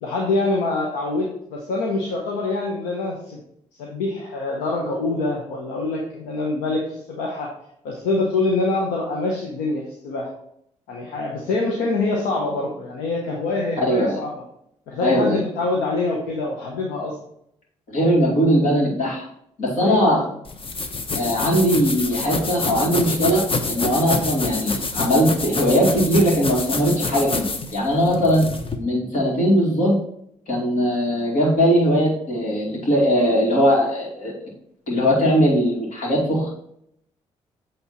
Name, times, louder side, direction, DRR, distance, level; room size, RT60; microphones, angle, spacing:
voice 1, 0.0-3.4 3.8-7.5 7.8-10.3 10.9-14.3 14.9-17.2 19.8-20.2, left 3 dB, 85° left, -1 dB, 0.9 m, -25 dB
voice 2, 13.8-14.2 15.0-15.4 17.9-19.3 19.6-20.2 21.1-28.5 28.8-30.0 30.5-34.3 34.9-36.5, equal, 70° left, -3 dB, 2.6 m, -20 dB
sound 1, 20.5-28.8, left 3 dB, 40° left, 0.9 m, -27 dB
8.1 x 3.5 x 4.3 m, 0.73 s
hypercardioid pair, 50°, 14 cm